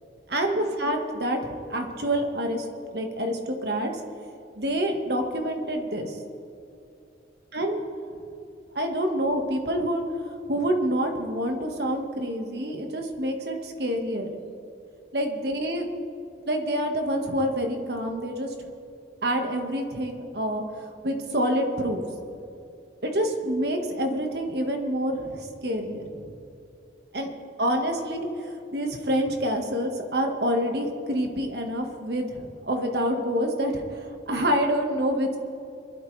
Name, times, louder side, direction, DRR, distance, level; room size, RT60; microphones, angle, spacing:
voice 1, 0.3-2.6 2.9-3.9 4.6-6.2 7.5-7.8 8.7-10.0 10.5-14.3 15.1-15.9 16.4-18.5 19.2-22.0 23.0-26.3 27.1-27.3 27.6-35.4, equal, 60° right, 3 dB, 1.7 m, -27 dB
23.0 x 12.0 x 3.4 m, 2.6 s
head